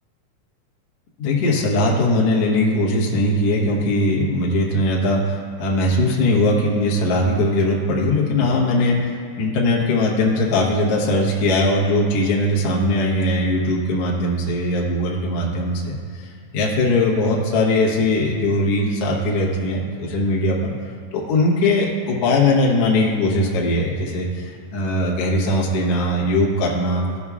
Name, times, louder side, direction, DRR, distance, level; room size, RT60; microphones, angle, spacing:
voice 1, 1.2-9.1 9.4-16.0 16.5-20.7 21.1-27.0, left 1 dB, 65° left, -4 dB, 1.5 m, -20 dB
15.5 x 5.4 x 2.4 m, 2.3 s
omnidirectional pair, 4.2 m